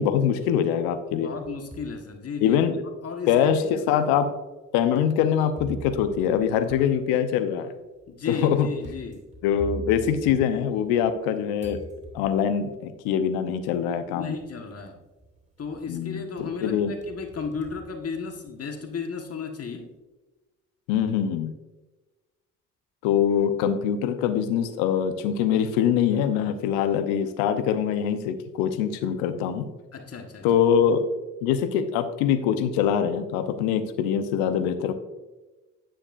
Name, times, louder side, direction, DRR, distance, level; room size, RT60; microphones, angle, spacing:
voice 1, 0.0-1.3 2.4-2.8 3.3-4.3 4.7-7.7 8.3-8.7 9.4-11.8 12.1-14.3 15.9-16.9 20.9-21.5 23.0-29.7 30.4-31.0 31.4-34.9, left 8 dB, 75° left, 10 dB, 0.9 m, -23 dB
sound 1, 1.1-2.0 2.6-2.7 3.6-3.7 5.6-11.3 11.6-12.6 13.8-13.9 14.4-14.8 15.2-16.0 16.4-18.7, right 2 dB, 20° right, 2.5 m, -43 dB
voice 2, 1.2-2.6 3.0-3.9 8.1-9.2 14.1-15.0 15.6-19.9 29.9-30.5, left 5 dB, 40° left, 4 dB, 1.4 m, -34 dB
10.0 x 8.7 x 2.5 m, 1.1 s
hypercardioid pair, 50°, 37 cm